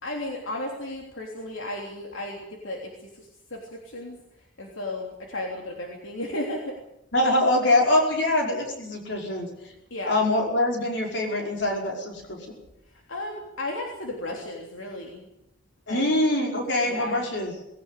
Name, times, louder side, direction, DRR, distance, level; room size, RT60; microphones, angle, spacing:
voice 1, 0.0-4.2 4.6-6.7 9.9-10.2 12.9-15.3 15.9-16.1 16.8-17.2, left 1 dB, 75° left, 0 dB, 3.2 m, -34 dB
voice 2, 7.1-9.5 10.1-12.4 15.9-17.5, left 1 dB, 60° left, 1 dB, 5.3 m, -24 dB
20.0 x 17.5 x 8.3 m, 0.86 s
head